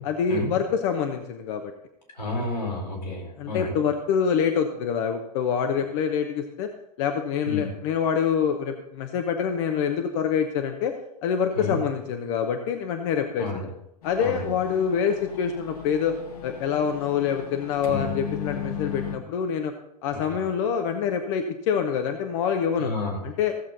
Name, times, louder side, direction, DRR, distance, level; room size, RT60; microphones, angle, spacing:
voice 1, 0.0-1.7 2.4-2.5 3.4-6.7 7.0-10.9 11.2-13.7 14.0-16.2 16.4-19.7 20.0-22.9 23.2-23.5, left 7 dB, 50° left, 5 dB, 1.0 m, -26 dB
voice 2, 2.1-3.8 7.4-7.7 11.6-11.8 13.4-13.6 14.2-14.5 17.9-18.1 20.1-20.2 22.8-23.2, left 2 dB, 85° left, -3 dB, 4.6 m, -30 dB
sound 1, 14.0-19.2, left 7 dB, 65° left, 1.8 m, -36 dB
15.5 x 7.4 x 4.0 m, 0.81 s
figure-of-eight pair, 100°, 21 cm